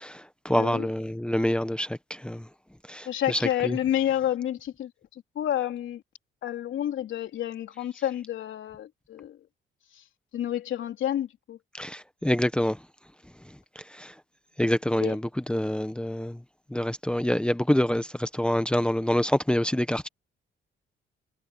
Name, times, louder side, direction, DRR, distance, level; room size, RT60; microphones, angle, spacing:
voice 1, 0.0-2.4 2.9-3.7 11.8-12.8 13.9-14.1 14.6-15.2 15.5-16.4 16.7-20.1, left 1 dB, 5° left, 1.2 m, -26 dB
voice 2, 0.5-0.9 3.0-6.0 6.4-9.5 9.9-10.1 10.3-11.6 15.0-15.2, left 11 dB, 75° left, 3.9 m, -30 dB
cardioid pair, 90°, 20 cm